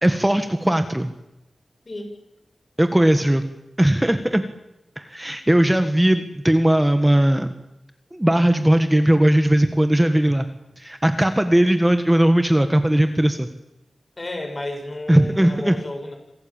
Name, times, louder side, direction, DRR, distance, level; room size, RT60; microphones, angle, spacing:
voice 1, 0.0-1.1 2.8-3.4 3.8-4.4 5.0-7.5 8.1-10.5 10.8-13.5 15.1-15.8, right 1 dB, 10° right, 8 dB, 1.5 m, -18 dB
voice 2, 14.2-16.2, left 1 dB, 35° left, 4 dB, 7.0 m, -32 dB
27.0 x 17.5 x 8.9 m, 0.91 s
wide cardioid pair, 90°, 0 cm